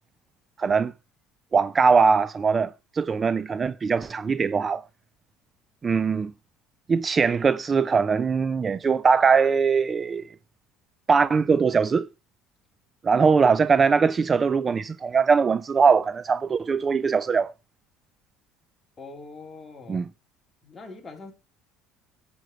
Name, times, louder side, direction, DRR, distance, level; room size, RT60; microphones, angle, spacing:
voice 1, 0.6-0.9 1.5-4.8 5.8-6.3 6.9-10.3 11.1-12.1 13.0-17.5 19.9-20.0, right 5 dB, 30° right, 0.5 m, -21 dB
voice 2, 19.0-20.1 20.6-21.3, left 3 dB, 20° left, 3.8 m, -42 dB
11.5 x 8.0 x 4.6 m
cardioid pair, 115°, 0 cm